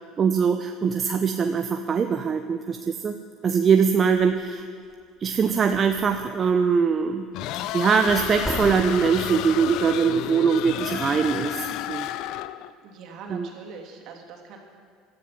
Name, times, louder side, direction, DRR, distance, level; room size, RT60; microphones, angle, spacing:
voice 1, 0.2-3.1 3.4-4.6 5.2-7.3 7.7-12.1 13.3-13.5, right 6 dB, 35° right, 6 dB, 0.9 m, -22 dB
sound 1, 4.9-5.0 5.3-6.4 8.1-9.3, equal, 10° right, 3.0 m, -35 dB
sound 2, 7.3-12.7, left 13 dB, 60° left, 0.5 m, -31 dB
voice 2, 12.8-14.6, right 5 dB, 55° right, 1 dB, 3.0 m, -42 dB
17.0 x 12.5 x 6.1 m, 2.1 s
hypercardioid pair, 65°, 0 cm